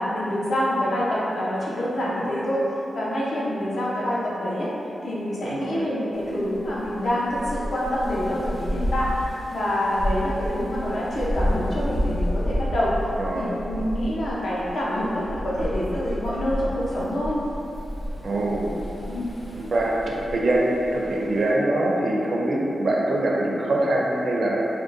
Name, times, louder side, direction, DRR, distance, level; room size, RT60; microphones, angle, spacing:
voice 1, 0.0-4.7 5.0-9.1 9.5-12.9 13.3-17.4 19.1-19.3, equal, 70° left, -7 dB, 0.7 m, -26 dB
voice 2, 5.4-5.9 13.2-13.5 18.2-18.7 19.5-24.6, right 1 dB, 55° right, -2 dB, 0.4 m, -24 dB
sound 1, 6.1-21.5, equal, 30° left, 0.6 m, -31 dB
3.6 x 2.2 x 2.5 m, 2.9 s
wide cardioid pair, 100°, 0 cm